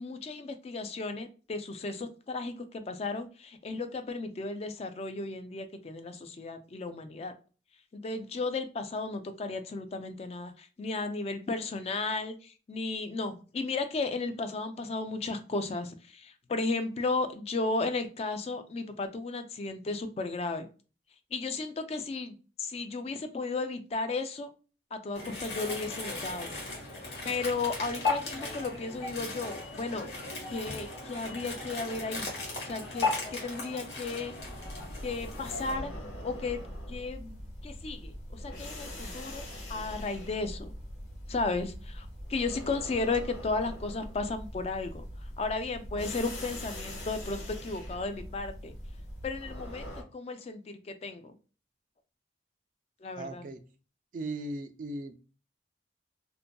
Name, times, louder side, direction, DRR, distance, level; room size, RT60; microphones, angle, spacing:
voice 1, 0.0-7.3 7.9-20.7 21.3-24.5 24.9-26.5 27.2-30.2 30.5-32.3 32.6-34.3 35.0-35.9 36.2-36.6 36.9-39.4 39.7-40.7 41.3-45.0 45.4-48.7 49.2-51.3 53.0-53.4, left 3 dB, 35° left, 8 dB, 0.3 m, -34 dB
sound 1, 25.1-35.7, left 3 dB, 70° left, 1.2 m, -36 dB
sound 2, 34.4-50.0, equal, 90° left, 1.0 m, -42 dB
voice 2, 53.1-53.6 54.1-55.1, right 2 dB, 50° right, 9 dB, 0.3 m, -37 dB
2.5 x 2.5 x 2.2 m, 0.35 s
head